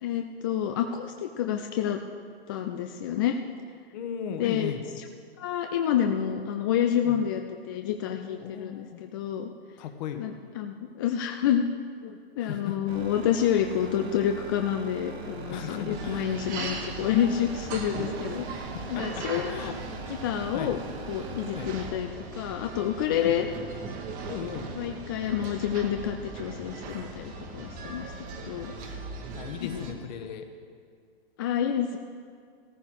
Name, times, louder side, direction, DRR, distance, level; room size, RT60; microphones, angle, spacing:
voice 1, 0.0-2.0 2.5-3.4 4.4-5.0 5.4-9.5 10.2-11.7 12.0-19.8 20.1-20.8 21.1-22.1 22.4-23.5 24.8-28.1 28.4-28.7 29.6-29.9 31.4-32.0, left 9 dB, 25° left, 5 dB, 0.3 m, -28 dB
voice 2, 3.9-4.8 7.0-7.2 8.4-9.0 9.8-10.2 12.4-12.8 15.5-16.6 18.7-19.7 20.5-20.7 21.5-21.7 23.2-23.4 24.3-24.7 29.3-30.4, left 8 dB, 45° left, 7 dB, 1.3 m, -37 dB
sound 1, 12.9-21.9, right 4 dB, 90° right, 1.5 m, -41 dB
sound 2, 15.9-29.9, right 3 dB, 25° right, 1.3 m, -39 dB
14.0 x 14.0 x 4.7 m, 2.1 s
hypercardioid pair, 145°, 31 cm